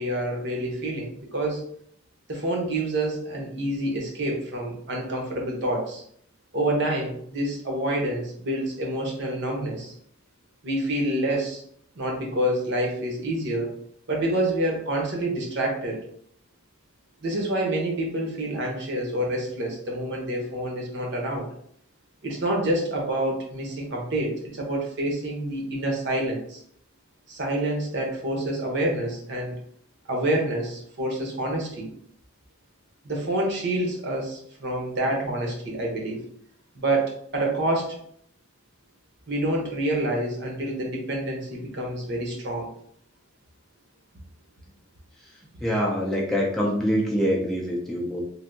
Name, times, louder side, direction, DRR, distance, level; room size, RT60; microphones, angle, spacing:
voice 1, 0.0-1.6 2.3-6.0 6.5-9.9 10.6-11.6 11.9-13.7 14.1-16.0 17.2-21.5 22.2-26.6 27.3-29.5 30.1-31.9 33.0-36.2 36.7-38.0 39.3-42.7, right 1 dB, 55° right, 0 dB, 0.9 m, -27 dB
voice 2, 45.2-48.2, equal, ahead, -3 dB, 0.4 m, -25 dB
3.3 x 2.6 x 2.6 m, 0.66 s
head